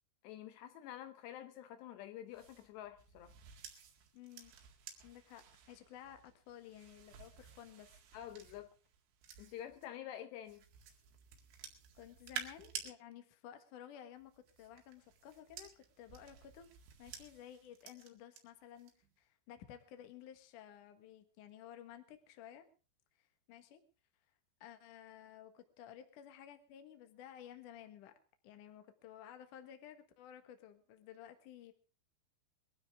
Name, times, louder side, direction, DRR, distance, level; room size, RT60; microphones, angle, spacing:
voice 1, 0.2-3.3 8.1-8.7 9.4-10.6, left 11 dB, 75° left, 3.0 m, -48 dB
sound 1, 2.3-9.9 10.5-12.9 14.2-18.4 18.8-19.1, right 8 dB, 85° right, 4.4 m, -52 dB
voice 2, 4.1-4.5 5.0-8.0 11.9-16.7 17.0-18.9 19.2-22.7 23.2-23.8 24.6-28.1 28.4-31.7, left 10 dB, 60° left, 2.5 m, -54 dB
22.5 x 13.0 x 3.6 m
omnidirectional pair, 5.2 m